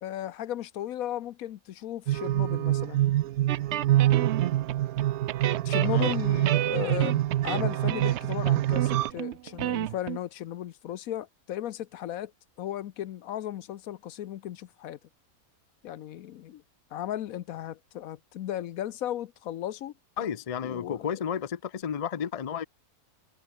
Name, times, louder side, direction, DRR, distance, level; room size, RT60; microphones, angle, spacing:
voice 1, 0.0-3.1 5.6-12.3 12.6-15.0 15.8-16.6 16.9-19.9 20.6-21.2, left 12 dB, 75° left, 1.1 m, -35 dB
sound 1, 2.1-9.1, right 14 dB, 80° right, 1.1 m, -26 dB
sound 2, 3.5-5.0 5.3-10.2, right 12 dB, 65° right, 0.7 m, -32 dB
voice 2, 20.2-22.6, left 8 dB, 50° left, 0.4 m, -32 dB
omnidirectional pair, 1.6 m